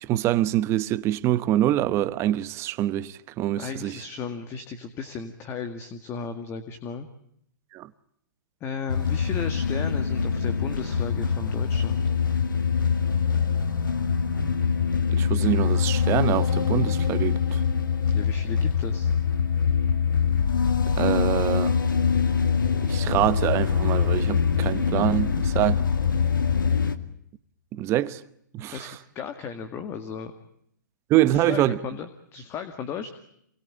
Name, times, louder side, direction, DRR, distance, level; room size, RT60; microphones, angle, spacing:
voice 1, 0.0-4.0 7.7-7.9 15.1-17.6 21.0-21.7 22.8-25.8 27.7-28.2 28.5-28.9 31.1-31.8, right 13 dB, 25° right, 1.0 m, -25 dB
voice 2, 3.6-7.1 8.6-12.0 18.1-19.1 25.6-25.9 28.7-30.3 31.3-33.1, left 6 dB, 25° left, 2.0 m, -35 dB
sound 1, 8.9-27.0, left 6 dB, 90° left, 2.3 m, -24 dB
28.0 x 21.5 x 8.8 m
hypercardioid pair, 135°, 11 cm